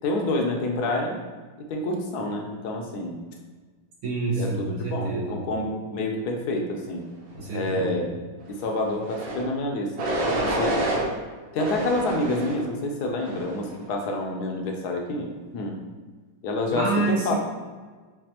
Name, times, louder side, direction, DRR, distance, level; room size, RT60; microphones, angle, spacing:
voice 1, 0.0-1.2 1.7-3.2 4.3-7.0 7.5-8.1 8.5-10.1 10.4-10.9 11.5-15.8 16.4-17.3, left 2 dB, 70° left, 1 dB, 0.9 m, -28 dB
voice 2, 4.0-5.4 7.3-8.0 16.7-17.4, right 3 dB, 90° right, -6 dB, 2.1 m, -27 dB
sound 1, 9.0-9.4 10.0-11.0 11.6-12.6 13.2-13.6, right 1 dB, 65° right, 1.5 m, -28 dB
7.2 x 2.4 x 2.8 m, 1.4 s
omnidirectional pair, 2.2 m